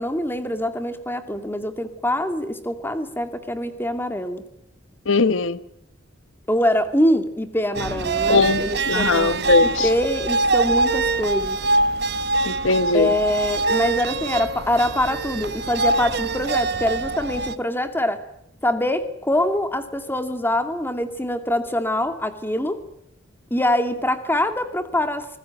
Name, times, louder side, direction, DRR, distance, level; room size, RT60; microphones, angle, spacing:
voice 1, 0.0-4.4 6.5-9.3 9.6-11.6 12.9-18.2 18.6-22.8 23.5-25.4, left 1 dB, 10° left, 2.3 m, -24 dB
voice 2, 5.1-5.6 8.3-9.9 12.4-13.1, left 3 dB, 90° left, 1.1 m, -20 dB
sound 1, 7.7-17.6, right 3 dB, 60° right, 1.3 m, -24 dB
25.5 x 20.0 x 9.1 m
head